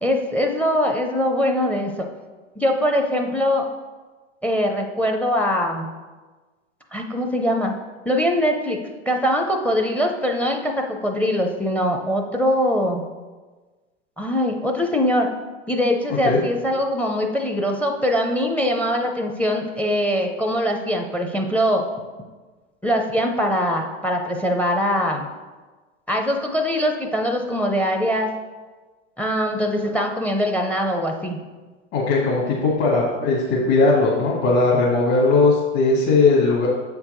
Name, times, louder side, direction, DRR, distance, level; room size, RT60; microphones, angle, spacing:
voice 1, 0.0-2.1 2.6-3.7 4.4-5.9 6.9-7.7 8.1-8.8 9.1-13.0 14.2-15.3 15.7-21.8 22.8-25.3 26.1-28.3 29.2-31.4, equal, 5° left, 4 dB, 0.5 m, -22 dB
voice 2, 31.9-36.7, left 3 dB, 50° left, -5 dB, 1.8 m, -18 dB
7.5 x 4.6 x 3.8 m, 1.3 s
hypercardioid pair, 95°, 38 cm